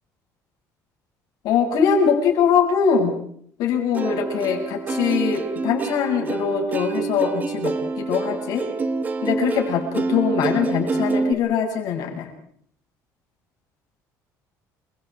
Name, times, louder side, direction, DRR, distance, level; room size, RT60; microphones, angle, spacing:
voice 1, 1.4-3.1 3.6-8.6 9.2-12.3, left 7 dB, 70° left, 2 dB, 7.8 m, -22 dB
Plucked string instrument, 3.9-11.3, right 3 dB, 25° right, 1.9 m, -26 dB
29.5 x 27.0 x 4.9 m, 0.65 s
cardioid pair, 150°, 7 cm